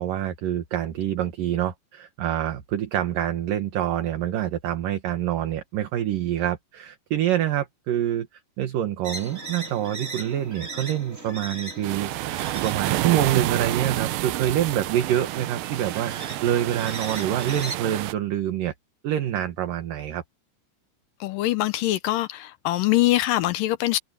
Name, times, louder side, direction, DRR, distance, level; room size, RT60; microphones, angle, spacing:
voice 1, 0.0-8.3 8.6-16.1 16.4-18.7 19.0-20.2, right 11 dB, 65° right, 3.0 m, -26 dB
sound 1, 9.0-17.8, right 2 dB, 20° right, 4.0 m, -39 dB
sound 2, 11.8-18.1, right 17 dB, 80° right, 2.5 m, -29 dB
voice 2, 21.2-24.0, left 16 dB, 80° left, 2.1 m, -23 dB
omnidirectional pair, 4.5 m